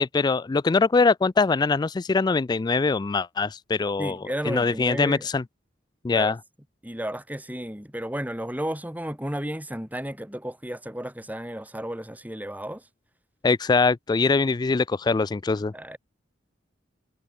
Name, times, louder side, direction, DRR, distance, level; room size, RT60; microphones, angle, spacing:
voice 1, 0.0-4.2 4.4-5.4 6.0-6.3 13.4-15.7, left 4 dB, 20° left, 0.3 m, -22 dB
voice 2, 4.0-5.3 6.1-6.4 6.8-12.8 15.7-16.0, equal, 10° right, 6.1 m, -33 dB
head